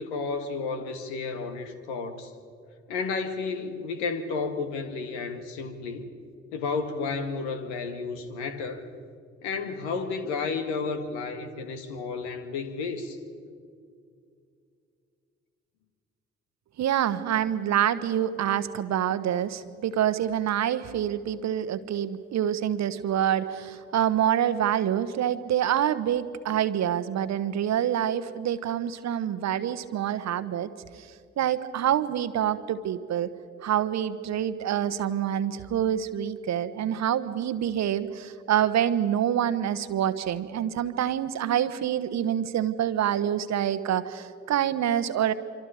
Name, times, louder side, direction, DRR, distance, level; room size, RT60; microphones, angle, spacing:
voice 1, 0.0-2.3 2.9-6.0 6.5-8.9 9.4-13.2, left 4 dB, 75° left, 8 dB, 1.7 m, -32 dB
voice 2, 16.8-30.7 31.4-33.3 33.6-45.3, right 10 dB, 50° right, 13 dB, 1.1 m, -26 dB
26.0 x 25.5 x 5.0 m, 2.3 s
figure-of-eight pair, 45°, 35 cm